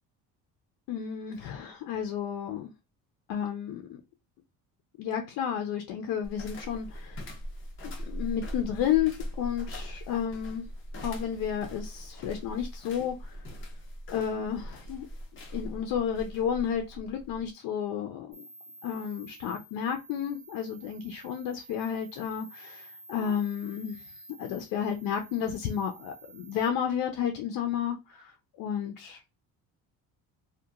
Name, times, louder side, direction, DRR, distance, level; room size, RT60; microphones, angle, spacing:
voice 1, 0.9-2.7 3.3-4.0 5.0-7.2 7.8-10.6 11.0-13.4 14.1-15.1 15.5-18.4 18.8-24.1 24.4-28.3 28.6-29.2, left 8 dB, 75° left, 0.5 m, -32 dB
sound 1, 6.2-17.5, equal, 35° left, 0.7 m, -41 dB
sound 2, 18.3-26.7, right 2 dB, 45° right, 0.9 m, -51 dB
2.8 x 2.2 x 2.3 m
cardioid pair, 155°, 34 cm